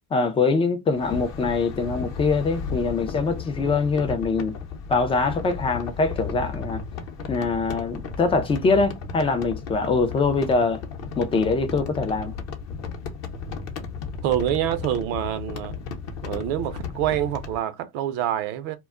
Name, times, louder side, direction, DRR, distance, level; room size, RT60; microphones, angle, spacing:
voice 1, 0.1-4.5 4.9-6.8 7.3-10.8 11.2-12.3, left 4 dB, 15° left, 0.4 m, -23 dB
sound 1, 0.9-17.6, left 5 dB, 40° left, 0.7 m, -34 dB
voice 2, 14.2-15.8 16.2-18.8, right 11 dB, 60° right, 0.7 m, -26 dB
2.2 x 2.0 x 3.5 m
supercardioid pair, 120°, 41 cm